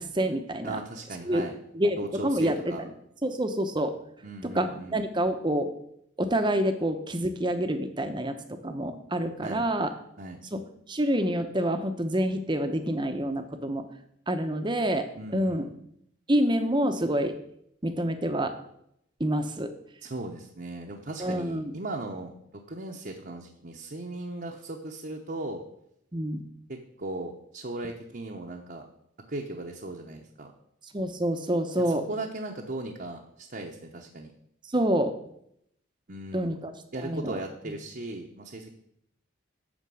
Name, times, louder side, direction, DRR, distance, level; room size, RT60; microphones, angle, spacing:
voice 1, 0.0-0.8 1.3-1.4 1.7-2.0 2.2-2.9 3.2-3.9 4.4-5.7 6.2-9.9 10.5-10.6 10.9-13.9 14.3-15.7 16.3-17.3 17.8-18.6 19.2-19.7 21.2-21.7 26.1-26.4 30.9-32.0 34.7-35.1 36.3-36.7 37.0-37.3, right 1 dB, 25° right, 7 dB, 0.9 m, -27 dB
voice 2, 0.6-1.5 2.0-2.8 4.2-5.0 9.4-9.7 10.2-10.4 15.2-15.6 20.0-25.6 26.7-28.9 29.3-30.5 31.8-34.3 36.1-36.5 36.9-38.7, right 2 dB, 45° right, 0 dB, 0.9 m, -37 dB
11.5 x 4.4 x 7.6 m, 0.73 s
head